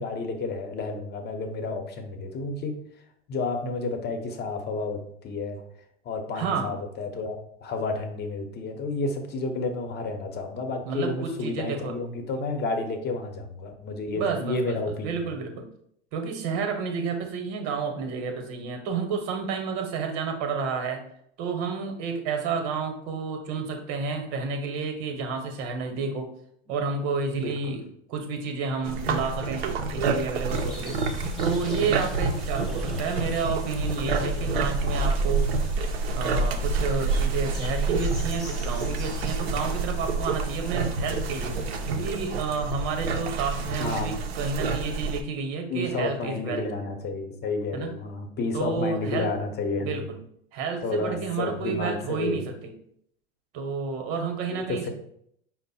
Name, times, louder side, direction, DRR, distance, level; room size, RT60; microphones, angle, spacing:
voice 1, 0.0-2.7 3.3-5.6 6.0-15.1 27.3-27.8 43.8-44.1 45.7-50.1 50.8-52.5 54.5-54.9, left 3 dB, 30° left, 5 dB, 0.9 m, -31 dB
voice 2, 6.3-6.7 10.8-11.9 14.1-15.7 16.1-21.0 21.4-26.3 26.7-27.8 28.1-35.7 36.1-46.7 47.7-48.0 48.5-49.3 49.8-50.2 50.5-52.7 53.5-54.9, right 5 dB, 50° right, 5 dB, 1.1 m, -30 dB
sound 1, 28.8-45.2, right 3 dB, 75° right, 0.6 m, -28 dB
sound 2, 30.5-42.3, equal, ahead, 0.9 m, -46 dB
5.1 x 2.1 x 4.2 m, 0.70 s
hypercardioid pair, 85°, 31 cm